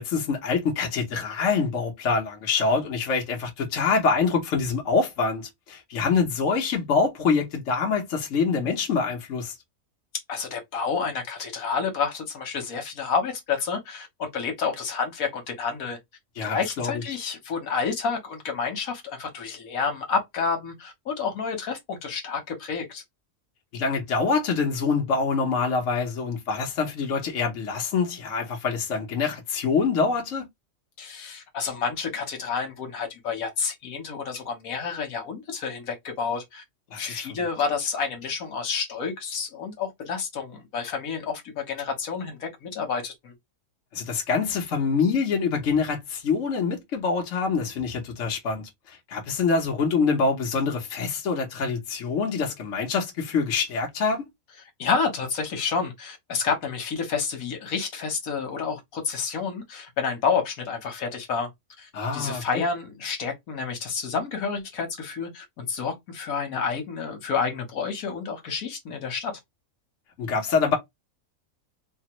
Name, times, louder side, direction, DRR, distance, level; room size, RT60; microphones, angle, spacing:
voice 1, 0.0-9.5 16.4-17.0 23.7-30.4 36.9-37.2 43.9-54.2 61.9-62.6 70.2-70.8, left 5 dB, 65° left, 1.2 m, -25 dB
voice 2, 10.3-16.0 16.4-23.0 31.0-36.6 37.0-43.3 54.8-61.5 61.8-69.3, left 5 dB, 85° left, 1.4 m, -29 dB
3.4 x 2.0 x 2.9 m
omnidirectional pair, 1.4 m